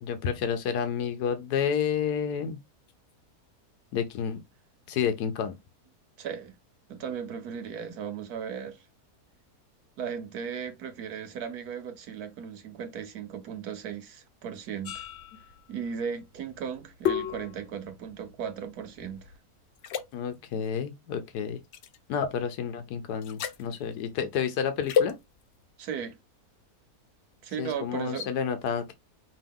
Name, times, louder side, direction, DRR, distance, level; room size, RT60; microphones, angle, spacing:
voice 1, 0.0-2.6 3.9-4.4 4.9-5.5 20.1-21.6 22.1-25.2 27.6-28.9, left 7 dB, 90° left, 1.3 m, -30 dB
voice 2, 6.2-6.6 6.9-8.8 10.0-15.0 15.7-19.3 25.8-26.2 27.4-28.3, right 7 dB, 75° right, 1.3 m, -36 dB
sound 1, 14.8-19.4 19.8-20.0 21.7-22.0 23.2-23.6 24.9-25.1, left 8 dB, 65° left, 0.6 m, -32 dB
5.3 x 2.7 x 3.5 m
omnidirectional pair, 1.7 m